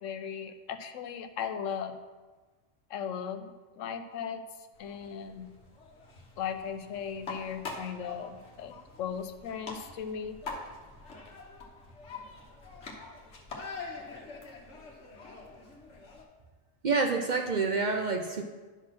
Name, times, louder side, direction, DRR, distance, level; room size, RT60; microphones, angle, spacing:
voice 1, 0.0-2.0 2.9-4.4 4.8-5.5 6.4-8.7 9.0-10.4, left 7 dB, 85° left, 8 dB, 1.0 m, -37 dB
sound 1, 4.7-16.2, left 3 dB, 65° left, 1.5 m, -45 dB
voice 2, 16.8-18.4, right 4 dB, 50° right, 4 dB, 0.6 m, -28 dB
10.5 x 4.2 x 5.9 m, 1.3 s
omnidirectional pair, 1.3 m